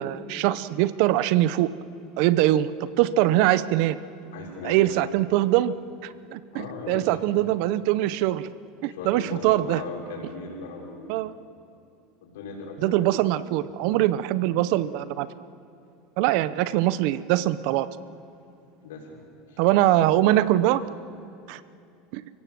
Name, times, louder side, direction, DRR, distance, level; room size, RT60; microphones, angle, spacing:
voice 1, 0.0-1.7 2.2-4.0 4.6-5.7 6.0-8.5 8.8-9.8 11.1-11.3 12.8-15.3 16.2-17.9 19.6-20.8 21.5-21.6 22.1-22.3, right 14 dB, 65° right, 16 dB, 0.8 m, -22 dB
voice 2, 4.3-5.0 6.5-7.1 8.9-11.2 12.2-13.1 18.8-19.2 19.5-19.6 19.9-20.1 20.4-20.6, left 4 dB, 85° left, -1 dB, 5.8 m, -38 dB
30.0 x 17.5 x 7.7 m, 2.7 s
supercardioid pair, 120°, 0 cm